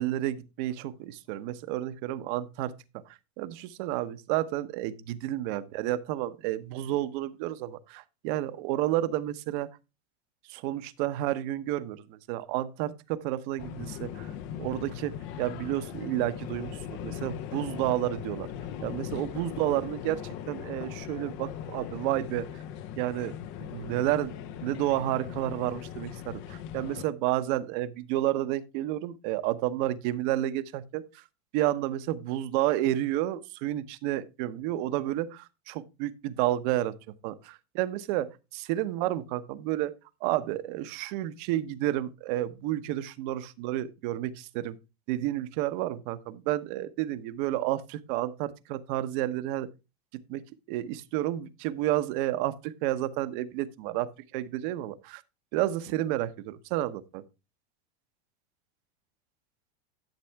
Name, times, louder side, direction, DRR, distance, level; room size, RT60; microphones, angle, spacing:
voice 1, 0.0-9.7 10.5-18.5 18.8-22.5 23.0-23.3 23.6-24.3 24.6-31.2 31.5-36.9 37.2-39.9 40.2-44.8 45.1-49.7 50.3-50.4 50.7-55.2 55.5-57.2, right 14 dB, 50° right, 1.0 m, -31 dB
sound 1, 13.6-27.1, left 10 dB, 35° left, 0.6 m, -39 dB
12.0 x 6.9 x 3.4 m
supercardioid pair, 145°, 32 cm